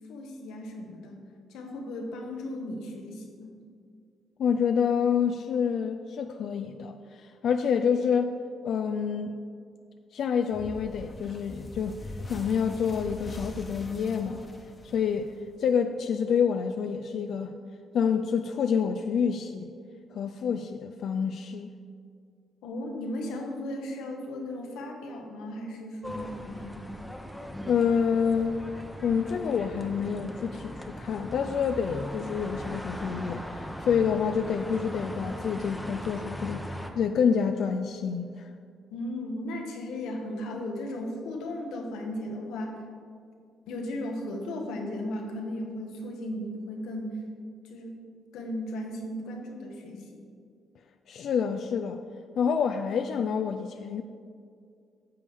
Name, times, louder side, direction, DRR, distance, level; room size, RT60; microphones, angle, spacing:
voice 1, 0.1-1.2 1.5-3.5 22.6-27.0 38.9-42.8 43.7-47.2 47.6-48.0 48.3-50.3, left 1 dB, 90° left, 2 dB, 1.1 m, -36 dB
voice 2, 4.4-8.4 8.6-9.3 10.1-12.0 12.3-14.5 14.8-15.3 15.6-17.5 17.9-19.7 20.1-21.7 27.7-28.6 29.0-36.6 36.9-38.5 51.1-52.0 52.4-54.0, left 6 dB, 65° left, 7 dB, 0.3 m, -27 dB
sound 1, 10.5-15.6, left 1 dB, 30° left, 1.0 m, -42 dB
sound 2, 26.0-36.9, equal, 5° left, 0.8 m, -39 dB
10.0 x 6.8 x 3.6 m, 2.3 s
cardioid pair, 90°, 0 cm